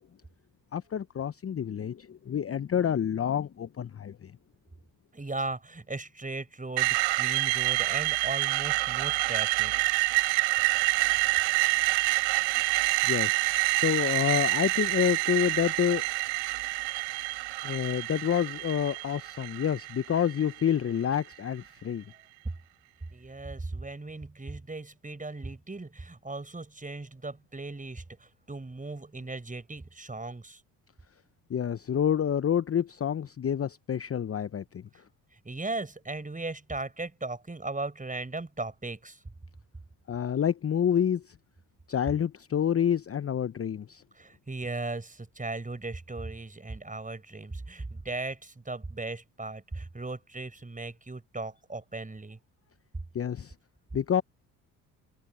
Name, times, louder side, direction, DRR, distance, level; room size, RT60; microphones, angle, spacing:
voice 1, 0.7-4.1 13.1-13.4 13.8-16.0 17.6-22.0 31.5-34.6 40.1-41.2 41.9-44.0 53.1-53.5 53.9-54.2, left 9 dB, 30° left, 0.9 m, -28 dB
voice 2, 5.1-9.7 23.1-30.6 35.4-39.2 44.2-52.4, right 2 dB, 15° right, 5.8 m, -37 dB
Screech, 6.8-20.7, right 21 dB, 70° right, 5.3 m, -27 dB
hypercardioid pair, 55°, 46 cm